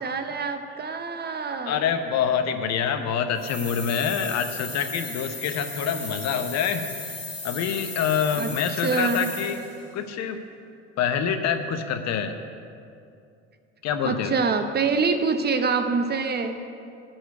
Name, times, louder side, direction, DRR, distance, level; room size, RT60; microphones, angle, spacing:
voice 1, 0.0-1.9 8.4-8.5 8.8-9.3 14.0-16.6, right 4 dB, 25° right, 8 dB, 0.7 m, -25 dB
voice 2, 1.6-7.2 7.4-9.6 9.9-10.4 11.0-12.4 13.8-14.4, left 7 dB, 45° left, 8 dB, 0.8 m, -26 dB
sound 1, 3.4-9.8, left 3 dB, 20° left, 2.4 m, -36 dB
11.0 x 4.5 x 8.1 m, 2.5 s
hypercardioid pair, 75°, 37 cm